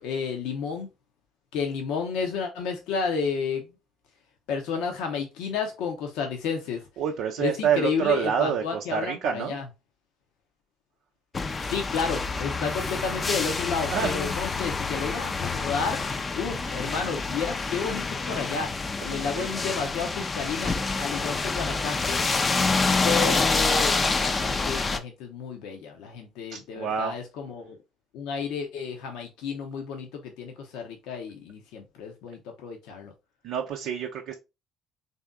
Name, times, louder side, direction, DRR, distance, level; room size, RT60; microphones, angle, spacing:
voice 1, 0.0-0.9 1.5-3.7 4.5-6.8 7.4-9.6 11.6-16.0 16.4-18.7 19.0-22.2 23.0-27.8 28.1-33.1, left 5 dB, 75° left, 0.7 m, -31 dB
voice 2, 7.0-9.6 13.8-14.2 16.6-16.8 19.2-19.5 22.9-23.1 26.5-27.2 33.4-34.3, right 8 dB, 70° right, 0.5 m, -28 dB
sound 1, 11.3-25.0, left 3 dB, 30° left, 0.5 m, -27 dB
3.5 x 2.7 x 3.5 m
hypercardioid pair, 60°, 0 cm